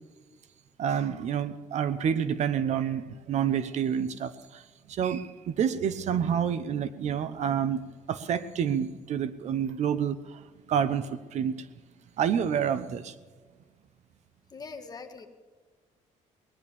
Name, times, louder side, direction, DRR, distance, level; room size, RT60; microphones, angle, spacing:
voice 1, 0.8-7.8 8.1-11.7 12.2-13.2, right 8 dB, 60° right, 14 dB, 0.9 m, -28 dB
voice 2, 14.5-15.3, left 4 dB, 30° left, 6 dB, 1.5 m, -42 dB
19.5 x 10.5 x 7.0 m, 1.4 s
cardioid pair, 150°, 13 cm